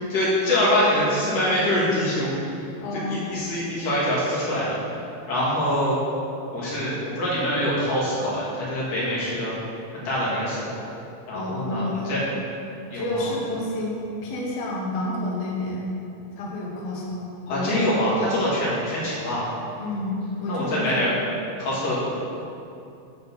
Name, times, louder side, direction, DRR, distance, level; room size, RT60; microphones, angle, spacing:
voice 1, 0.1-2.3 2.9-4.7 5.3-6.0 6.5-9.5 10.0-10.8 11.3-12.2 12.9-13.3 17.5-19.5 20.5-21.1 21.6-22.1, left 1 dB, 50° left, -8 dB, 2.7 m, -24 dB
voice 2, 2.8-3.2 11.3-12.3 12.9-14.0 14.2-15.9 16.3-18.0 19.8-20.1 20.4-21.1, left 1 dB, 80° left, -3 dB, 1.4 m, -29 dB
8.4 x 3.9 x 5.5 m, 2.7 s
omnidirectional pair, 4.1 m